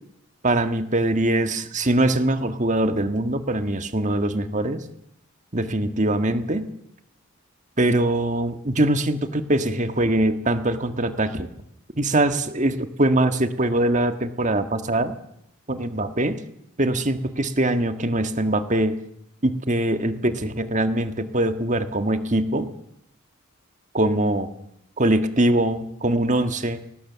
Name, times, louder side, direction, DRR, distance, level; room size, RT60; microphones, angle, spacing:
voice 1, 0.4-4.8 5.5-6.7 7.8-11.5 12.0-15.1 15.7-16.4 16.8-18.9 19.4-22.7 23.9-24.5 25.0-26.8, right 1 dB, 35° right, 9 dB, 1.6 m, -22 dB
23.0 x 18.5 x 6.9 m, 0.78 s
head